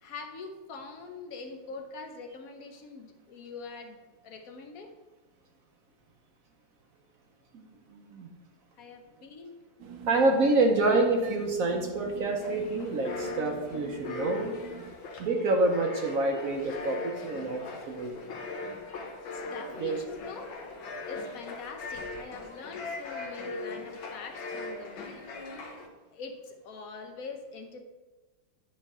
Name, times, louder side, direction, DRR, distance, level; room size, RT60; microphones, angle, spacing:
voice 1, 0.0-4.9 8.8-9.5 19.3-20.6 21.1-25.2 26.1-27.8, left 4 dB, 60° left, 5 dB, 1.0 m, -43 dB
voice 2, 7.9-8.3 10.1-14.5 15.2-18.3 19.8-20.0, right 2 dB, 60° right, 2 dB, 1.0 m, -27 dB
sound 1, 9.8-14.9, right 7 dB, 80° right, 1.6 m, -45 dB
sound 2, 12.4-25.9, left 3 dB, 90° left, 1.8 m, -40 dB
9.7 x 3.3 x 5.4 m, 1.2 s
omnidirectional pair, 2.1 m